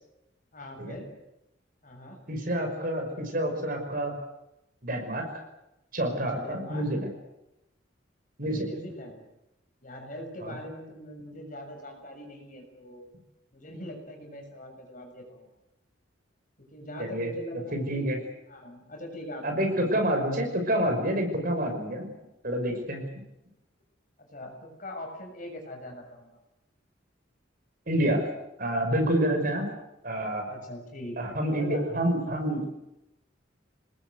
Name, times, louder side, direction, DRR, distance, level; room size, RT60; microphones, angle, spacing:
voice 1, 0.5-1.1 1.8-2.2 6.1-6.9 8.5-9.2 9.8-13.1 13.5-15.5 16.6-18.2 18.5-20.0 24.3-26.4 30.5-32.1, left 1 dB, 45° left, 3 dB, 6.9 m, -42 dB
voice 2, 2.3-4.1 4.8-5.2 5.9-7.1 8.4-8.7 10.4-10.6 17.0-17.3 17.7-18.2 19.4-22.1 22.4-23.0 27.9-28.3 28.6-29.7 30.0-30.5 31.2-32.7, right 1 dB, 50° right, 4 dB, 5.8 m, -28 dB
26.5 x 20.0 x 8.2 m, 0.92 s
head